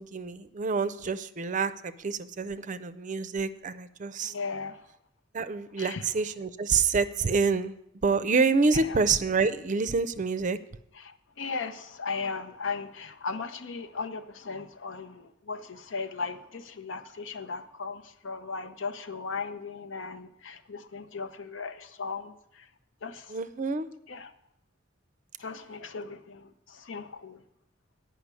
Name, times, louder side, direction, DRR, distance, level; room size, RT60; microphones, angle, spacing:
voice 1, 0.0-4.3 5.3-7.8 8.0-10.6 23.3-23.9, right 4 dB, 40° right, 12 dB, 0.5 m, -27 dB
voice 2, 4.2-4.8 5.8-6.1 8.7-9.0 11.0-22.7 23.0-23.3 24.1-24.3 25.4-27.4, left 4 dB, 75° left, 9 dB, 0.8 m, -37 dB
9.5 x 5.8 x 8.2 m, 0.78 s
head